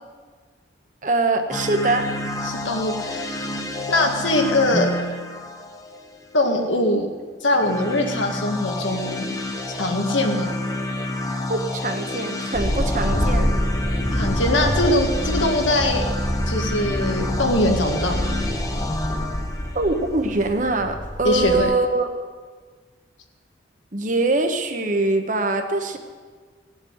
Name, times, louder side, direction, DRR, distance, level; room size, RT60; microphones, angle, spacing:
voice 1, 1.0-2.1 11.5-13.5 19.7-22.1 23.9-26.0, right 2 dB, 40° right, 6 dB, 1.1 m, -23 dB
sound 1, 1.5-6.3 7.5-20.6, left 2 dB, 20° left, 0.9 m, -29 dB
voice 2, 2.5-3.4 3.9-4.9 6.3-7.1 7.4-9.3 9.8-10.5 14.1-16.0 16.5-18.3 21.2-21.7, left 1 dB, 90° left, 2 dB, 1.9 m, -22 dB
sound 2, 12.5-21.6, equal, 45° left, 1.8 m, -26 dB
17.0 x 7.5 x 8.0 m, 1.5 s
head